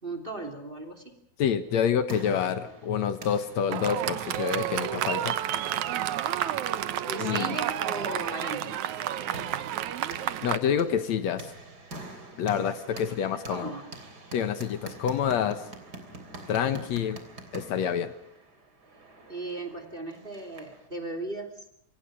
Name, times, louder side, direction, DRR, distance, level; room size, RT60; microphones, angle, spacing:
voice 1, 0.0-1.2 7.1-8.8 12.9-13.9 19.3-21.6, right 2 dB, 20° right, 8 dB, 3.0 m, -37 dB
voice 2, 1.4-5.4 7.2-7.6 10.4-11.5 12.4-13.7 14.3-15.6 16.5-17.2 17.5-18.1, left 8 dB, 70° left, 11 dB, 2.5 m, -27 dB
sound 1, 1.6-20.9, right 2 dB, 35° right, 3.6 m, -47 dB
Fireworks, 3.7-10.6, right 11 dB, 85° right, 2.5 m, -30 dB
27.5 x 25.0 x 4.9 m, 0.71 s
omnidirectional pair, 3.3 m